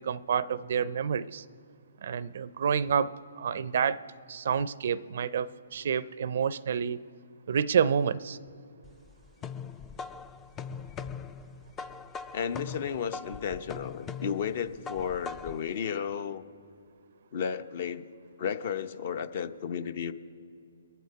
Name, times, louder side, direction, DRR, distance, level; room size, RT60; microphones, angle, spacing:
voice 1, 0.0-1.5 2.0-4.0 4.3-7.0 7.5-8.4, right 7 dB, 60° right, 17 dB, 0.4 m, -29 dB
sound 1, 8.8-15.7, left 6 dB, 15° left, 0.4 m, -41 dB
voice 2, 12.3-16.4 17.3-18.1 18.4-20.1, left 7 dB, 50° left, 12 dB, 0.7 m, -33 dB
23.5 x 7.9 x 4.6 m, 2.6 s
hypercardioid pair, 140°, 0 cm